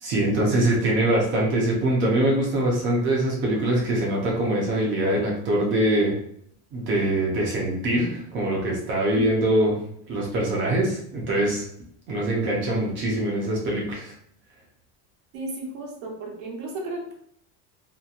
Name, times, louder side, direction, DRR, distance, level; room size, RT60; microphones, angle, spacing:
voice 1, 0.0-6.2 6.7-9.8 10.1-11.6 12.1-14.1, right 1 dB, 30° right, -2 dB, 0.5 m, -23 dB
voice 2, 15.3-17.1, right 2 dB, 80° right, 0 dB, 0.9 m, -34 dB
2.8 x 2.1 x 2.4 m, 0.65 s
cardioid pair, 175°, 40 cm